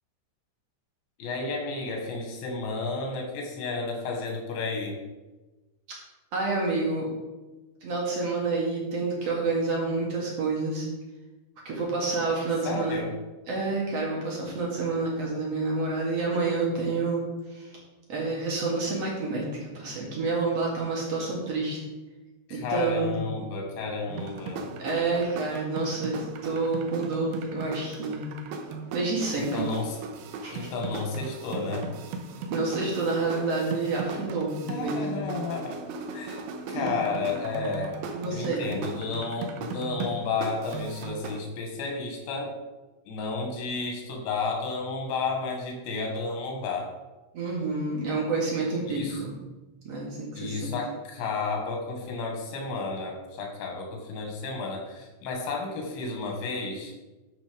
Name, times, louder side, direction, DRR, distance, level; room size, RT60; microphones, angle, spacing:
voice 1, 1.2-5.0 12.6-13.1 22.5-24.7 29.3-30.0 30.5-31.9 34.7-35.8 36.1-36.4 36.7-38.0 38.3-42.5 43.1-46.9 49.0-49.2 50.3-56.9, left 4 dB, 85° left, 1 dB, 3.9 m, -32 dB
voice 2, 6.3-7.1 7.8-10.9 11.7-13.0 13.5-17.2 17.5-17.7 18.1-19.5 19.7-21.8 22.5-23.2 24.8-28.3 28.9-29.7 30.4-30.7 32.5-35.3 36.7-37.0 38.1-38.7 47.3-49.3 49.8-50.7, right 3 dB, 50° right, -3 dB, 2.3 m, -28 dB
sound 1, 24.1-41.4, right 4 dB, 75° right, 2.4 m, -37 dB
12.0 x 5.1 x 5.1 m, 1.1 s
omnidirectional pair, 5.0 m